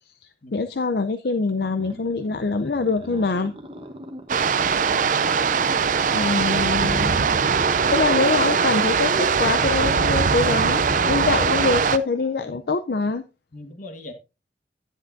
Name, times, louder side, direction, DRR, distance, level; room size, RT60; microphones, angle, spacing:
voice 1, 0.5-3.5 5.0-5.5 6.1-7.4 7.9-13.2, left 4 dB, 60° left, 0.5 m, -24 dB
Inverse Growling, 1.6-12.7, right 1 dB, 30° right, 1.0 m, -37 dB
sound 1, 4.3-12.0, right 6 dB, 45° right, 0.4 m, -21 dB
voice 2, 7.7-8.1 13.5-14.1, left 1 dB, 45° left, 1.4 m, -42 dB
10.5 x 9.8 x 2.6 m
head